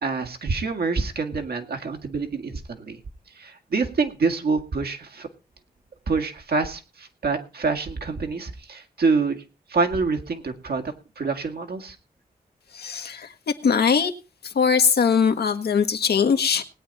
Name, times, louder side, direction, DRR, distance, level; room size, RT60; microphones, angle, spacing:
voice 1, 0.0-3.0 3.4-5.3 6.1-9.4 9.7-12.0, right 4 dB, 75° right, 2.2 m, -26 dB
voice 2, 12.7-14.1 14.4-16.6, left 6 dB, 80° left, 1.4 m, -21 dB
19.5 x 8.8 x 4.2 m
cardioid pair, 45°, 16 cm